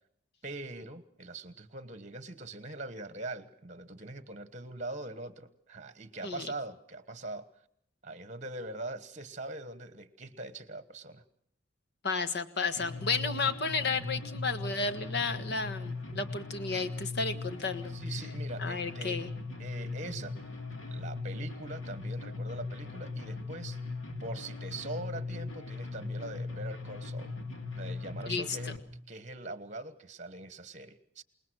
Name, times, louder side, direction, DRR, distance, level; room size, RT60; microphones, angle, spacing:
voice 1, 0.4-7.5 8.0-11.2 17.9-19.2 19.6-20.4 20.9-23.8 24.2-27.3 27.7-28.7 29.1-31.2, right 2 dB, 35° right, 13 dB, 1.3 m, -42 dB
voice 2, 12.0-18.0 18.6-19.3 28.2-28.6, left 4 dB, 55° left, 10 dB, 1.5 m, -32 dB
sound 1, 12.8-28.8, left 3 dB, 75° left, 2.8 m, -39 dB
28.0 x 20.0 x 6.3 m, 0.68 s
head